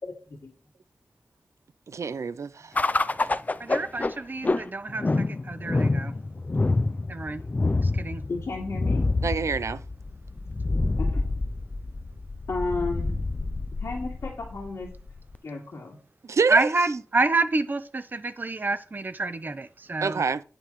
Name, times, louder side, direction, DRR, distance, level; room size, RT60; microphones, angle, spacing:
voice 1, 0.0-0.5 6.9-7.0 8.3-9.0 11.0-11.3 12.5-13.2 13.8-14.9 15.4-16.0, left 3 dB, 85° left, 2.5 m, -33 dB
voice 2, 1.9-2.8 9.2-9.8 16.2-16.7 20.0-20.4, right 5 dB, 75° right, 0.4 m, -26 dB
sound 1, 2.8-15.4, left 3 dB, 30° left, 0.4 m, -27 dB
voice 3, 3.6-6.1 7.1-7.4 7.8-8.2 16.5-20.2, right 3 dB, 40° right, 0.7 m, -28 dB
9.3 x 9.0 x 3.1 m
wide cardioid pair, 95°, 5 cm